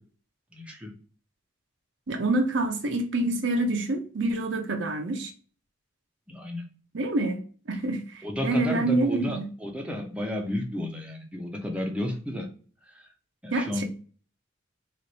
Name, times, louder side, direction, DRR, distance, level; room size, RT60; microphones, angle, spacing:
voice 1, 0.5-1.0 6.3-6.7 8.2-12.5 12.9-13.1 13.4-13.8, left 1 dB, 5° right, 1 dB, 0.6 m, -32 dB
voice 2, 2.1-5.3 6.9-7.4 7.7-9.5 13.5-13.8, right 2 dB, 65° right, 5 dB, 0.7 m, -27 dB
3.1 x 2.5 x 4.0 m, 0.39 s
head